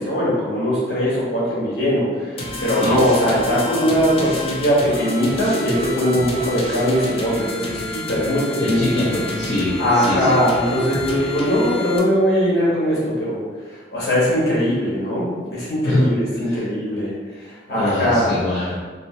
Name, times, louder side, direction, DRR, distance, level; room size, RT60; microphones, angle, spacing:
voice 1, 0.0-9.1 9.8-13.4 13.9-17.1 17.4-18.3, equal, 65° left, -8 dB, 1.1 m, -20 dB
sound 1, 2.4-12.0, left 1 dB, 30° left, 0.3 m, -29 dB
voice 2, 2.7-3.0 8.6-10.4 15.8-16.1 16.4-16.7 17.7-18.8, left 1 dB, 90° left, -9 dB, 0.7 m, -23 dB
2.7 x 2.6 x 2.6 m, 1.4 s
head